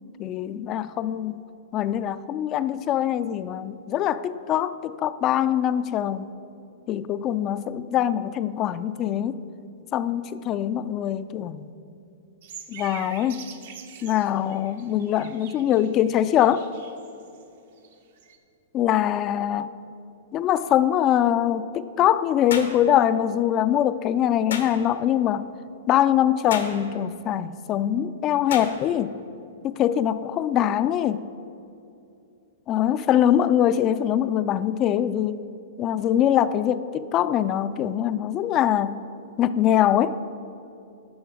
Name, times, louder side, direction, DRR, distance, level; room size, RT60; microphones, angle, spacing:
voice 1, 0.2-1.4 1.7-6.3 6.9-9.4 9.9-11.6 12.7-13.5 14.0-16.7 18.7-19.7 20.3-25.5 25.9-29.1 29.6-31.3 32.7-35.4 35.8-39.0 39.4-40.2, left 10 dB, 35° left, 14 dB, 0.3 m, -23 dB
sound 1, 12.4-17.5 17.8-18.4, right 7 dB, 65° right, 0.8 m, -45 dB
sound 2, 22.5-22.8 24.5-24.7 26.5-26.8 28.5-28.7, left 6 dB, 80° left, 1.0 m, -31 dB
10.0 x 5.9 x 4.8 m, 2.7 s
hypercardioid pair, 125°, 0 cm